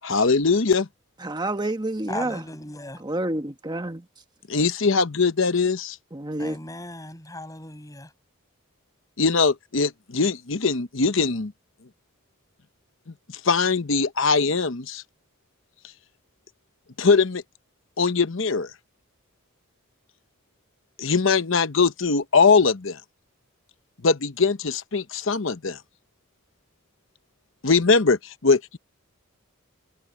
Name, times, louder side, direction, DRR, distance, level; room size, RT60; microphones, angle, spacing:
voice 1, 0.0-0.9 4.5-6.0 9.2-11.5 13.4-15.0 17.0-17.4 18.0-18.7 21.0-23.0 24.0-25.8 27.6-28.8, left 4 dB, 60° left, 1.0 m, -21 dB
voice 2, 1.2-2.4 3.0-4.1 6.1-6.6, right 1 dB, 20° right, 1.2 m, -29 dB
voice 3, 2.1-3.0 6.4-8.1, left 2 dB, 15° left, 6.5 m, -37 dB
head